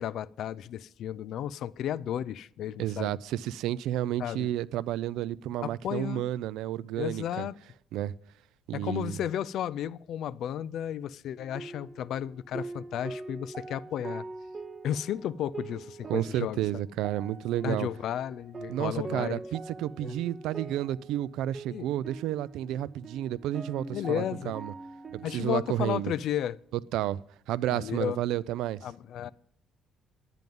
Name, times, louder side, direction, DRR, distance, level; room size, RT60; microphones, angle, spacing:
voice 1, 0.0-3.1 4.2-4.5 5.6-6.2 7.0-7.5 8.7-14.2 14.8-16.6 17.6-19.4 20.0-20.2 21.7-21.9 23.9-24.5 25.2-26.6 27.7-28.2 28.8-29.3, left 10 dB, 55° left, 0.3 m, -33 dB
voice 2, 2.8-7.5 7.9-8.1 8.7-9.1 16.1-17.9 18.7-24.7 25.1-26.1 26.9-27.2 27.5-28.9, right 13 dB, 85° right, 0.3 m, -31 dB
sound 1, 11.4-26.0, right 3 dB, 20° right, 0.5 m, -43 dB
11.0 x 9.2 x 5.3 m
cardioid pair, 175°, 0 cm